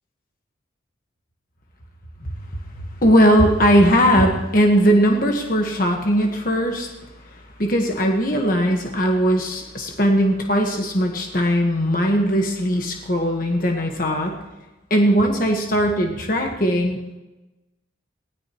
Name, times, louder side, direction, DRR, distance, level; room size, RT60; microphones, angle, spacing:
voice 1, 2.8-6.9 7.6-14.4 14.9-17.2, equal, 45° left, 2 dB, 1.5 m, -19 dB
19.0 x 17.0 x 3.1 m, 1.1 s
head